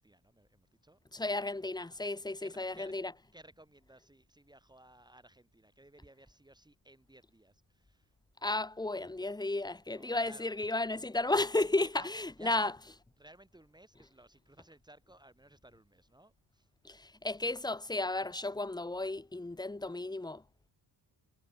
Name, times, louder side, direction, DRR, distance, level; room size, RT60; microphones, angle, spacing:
voice 1, 0.0-1.0 1.9-2.1 2.4-2.9 3.3-8.1 9.9-10.5 11.6-12.1 12.4-12.8 13.2-16.7, right 1 dB, 10° right, 4.4 m, -58 dB
voice 2, 1.1-3.1 8.4-12.7 16.8-20.4, left 2 dB, 10° left, 1.1 m, -33 dB
cardioid pair, 115°, 46 cm